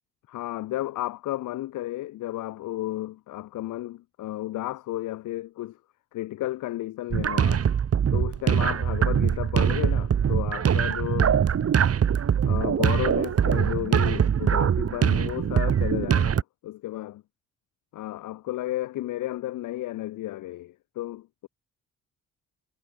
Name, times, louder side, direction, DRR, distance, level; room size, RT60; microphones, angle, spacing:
voice 1, 0.3-5.8 6.1-7.7 8.1-11.4 12.5-17.2 17.9-21.5, left 15 dB, 85° left, 2.1 m, -33 dB
sound 1, 7.1-16.4, right 8 dB, 50° right, 3.4 m, -23 dB
cardioid pair, 90°, 30 cm